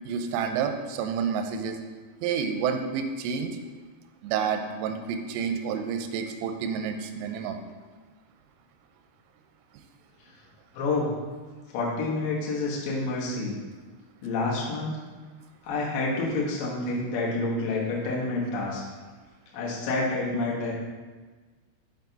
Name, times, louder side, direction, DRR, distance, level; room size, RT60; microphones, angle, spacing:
voice 1, 0.1-1.8 2.2-3.6 4.2-7.6, right 6 dB, 85° right, 6 dB, 3.1 m, -29 dB
voice 2, 10.7-11.1 11.7-13.5 14.2-15.0 15.6-18.8 19.5-20.7, left 3 dB, 75° left, -5 dB, 2.1 m, -28 dB
7.4 x 4.6 x 3.9 m, 1.4 s
omnidirectional pair, 5.8 m